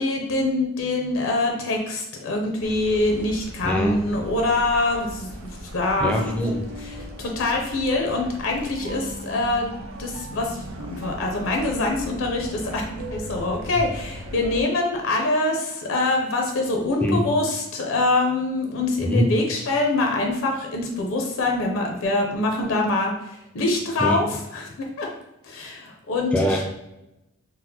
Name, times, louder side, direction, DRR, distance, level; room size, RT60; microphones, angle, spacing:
voice 1, 0.0-5.3 5.7-6.4 7.2-9.7 10.0-24.3 24.5-24.7 25.0-25.1 25.4-26.4, left 2 dB, 70° left, 1 dB, 0.5 m, -24 dB
sound 1, 2.6-14.6, equal, 80° right, 0.5 m, -37 dB
voice 2, 3.6-4.0 6.0-6.9 17.0-17.2 19.0-19.3 24.0-24.2 26.3-26.7, equal, 5° left, 1 dB, 0.3 m, -23 dB
4.0 x 2.0 x 2.7 m, 0.90 s
head